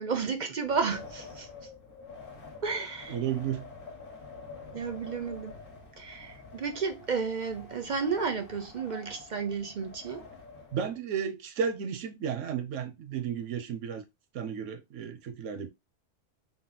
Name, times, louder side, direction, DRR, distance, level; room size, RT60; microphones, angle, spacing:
voice 1, 0.0-1.5 2.6-3.2 4.7-5.5 6.0-10.3, right 5 dB, 50° right, 0.6 m, -32 dB
Wind, 0.6-11.0, left 4 dB, 50° left, 1.3 m, -48 dB
voice 2, 3.1-3.6 10.7-14.0 14.3-15.7, right 7 dB, 90° right, 1.0 m, -33 dB
4.0 x 2.1 x 3.9 m
omnidirectional pair, 1.2 m